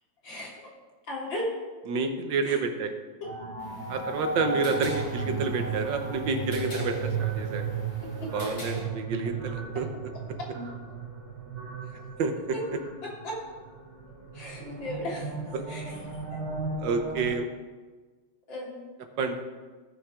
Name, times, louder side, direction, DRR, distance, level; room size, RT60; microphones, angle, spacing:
voice 1, 1.1-1.5 2.5-2.6 3.2-3.3 8.0-8.3 11.9-12.1 13.2-13.4 14.3-15.4 15.7-16.4 18.5-18.7, left 1 dB, 80° left, -4 dB, 3.6 m, -36 dB
voice 2, 1.9-2.9 3.9-7.6 8.3-9.9 12.2-12.3 16.8-17.5 19.2-19.4, right 4 dB, 80° right, 6 dB, 1.8 m, -29 dB
sound 1, 3.2-17.3, right 4 dB, 40° right, 2.0 m, -35 dB
sound 2, 3.6-8.8, right 1 dB, 55° left, 4.6 m, -42 dB
17.5 x 5.9 x 4.9 m, 1.4 s
omnidirectional pair, 2.0 m